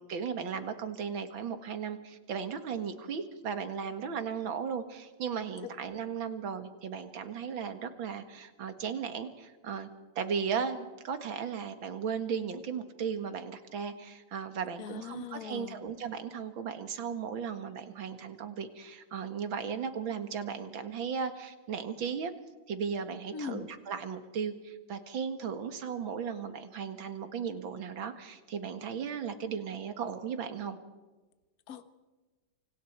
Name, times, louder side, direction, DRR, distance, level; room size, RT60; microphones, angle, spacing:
voice 1, 0.0-9.9 10.2-22.3 22.7-30.8, right 6 dB, 70° right, 8 dB, 2.5 m, -36 dB
voice 2, 14.8-15.8 23.3-23.7 31.7-31.9, left 7 dB, 50° left, 11 dB, 1.6 m, -40 dB
28.0 x 26.5 x 4.6 m, 1.2 s
omnidirectional pair, 2.2 m